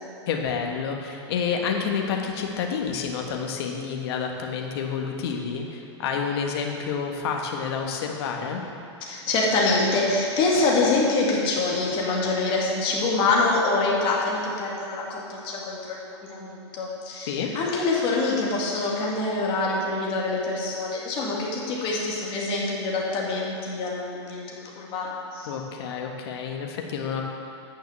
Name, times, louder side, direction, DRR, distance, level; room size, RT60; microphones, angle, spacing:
voice 1, 0.3-8.6 17.3-17.5 25.5-27.2, left 6 dB, 60° left, 2 dB, 1.4 m, -29 dB
voice 2, 9.1-25.5, left 3 dB, 35° left, -3 dB, 2.3 m, -25 dB
9.3 x 6.4 x 6.7 m, 2.6 s
hypercardioid pair, 135°, 15 cm